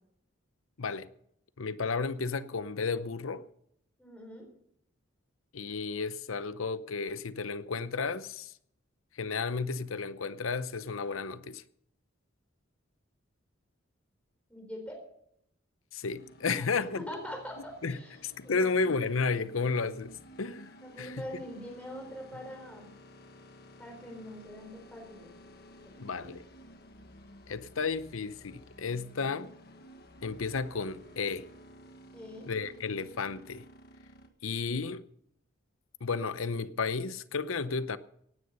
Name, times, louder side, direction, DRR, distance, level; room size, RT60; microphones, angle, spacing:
voice 1, 0.8-1.1 1.6-3.4 5.5-8.5 9.2-11.6 15.9-17.0 17.8-20.7 21.0-21.2 26.0-26.4 27.5-29.5 30.2-31.4 32.5-33.6 34.4-35.0 36.0-38.0, left 4 dB, 80° left, 0.8 m, -33 dB
voice 2, 4.0-4.5 14.5-15.0 16.7-18.2 18.4-18.9 20.8-22.9 23.8-25.3 25.8-26.3 32.1-32.5, equal, 5° left, 4.0 m, -43 dB
sound 1, 16.1-34.3, equal, 50° left, 1.6 m, -54 dB
17.0 x 9.6 x 5.4 m
head